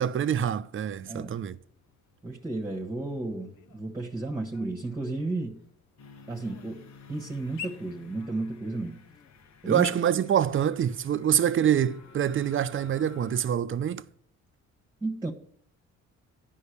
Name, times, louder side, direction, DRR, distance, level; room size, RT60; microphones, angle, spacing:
voice 1, 0.0-1.6 9.7-14.0, right 9 dB, 45° right, 0.6 m, -26 dB
voice 2, 1.1-1.4 2.2-5.6 6.3-9.1 9.6-9.8 15.0-15.3, right 2 dB, 10° right, 1.3 m, -33 dB
sound 1, 1.3-14.2, left 7 dB, 90° left, 1.0 m, -52 dB
sound 2, 6.0-13.5, left 5 dB, 65° left, 1.3 m, -53 dB
9.7 x 5.6 x 6.8 m
cardioid pair, 90°, 30 cm